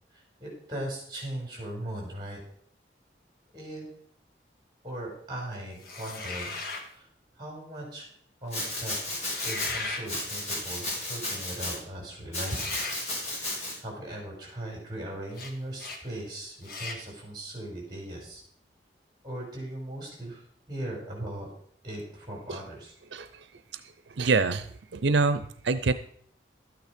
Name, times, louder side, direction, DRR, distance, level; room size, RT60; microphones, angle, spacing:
voice 1, 0.1-2.4 3.5-3.8 4.8-6.6 6.9-7.1 7.4-8.1 8.4-9.2 9.4-12.8 13.8-18.4 19.2-21.5 21.8-22.9, right 1 dB, 25° right, -1 dB, 5.2 m, -38 dB
sound 1, 5.8-6.9 9.2-10.1 12.4-13.0 15.3-15.5 15.8-16.0 16.6-17.0, left 3 dB, 55° left, 1.8 m, -37 dB
Domestic sounds home sounds, 8.5-9.7 10.1-11.8 12.3-13.7, left 1 dB, 40° left, 4.9 m, -33 dB
voice 2, 23.1-23.5 23.7-23.8 24.2-25.9, right 4 dB, 90° right, 12 dB, 0.6 m, -26 dB
13.0 x 9.2 x 5.2 m, 0.64 s
head